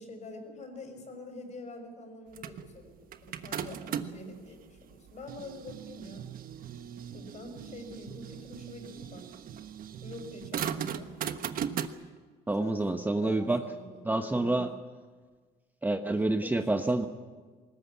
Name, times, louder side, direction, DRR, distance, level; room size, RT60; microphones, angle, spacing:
voice 1, 0.0-6.3 7.1-9.3 10.0-11.1 12.5-14.6 16.4-17.1, left 2 dB, 45° left, 6 dB, 5.9 m, -45 dB
sound 1, 2.4-4.3 4.9-11.9, right 8 dB, 60° right, 1.3 m, -38 dB
voice 2, 12.5-13.6 14.1-14.7 15.8-17.1, right 2 dB, 10° right, 6 dB, 1.1 m, -28 dB
20.5 x 19.5 x 8.5 m, 1.4 s
cardioid pair, 110°, 17 cm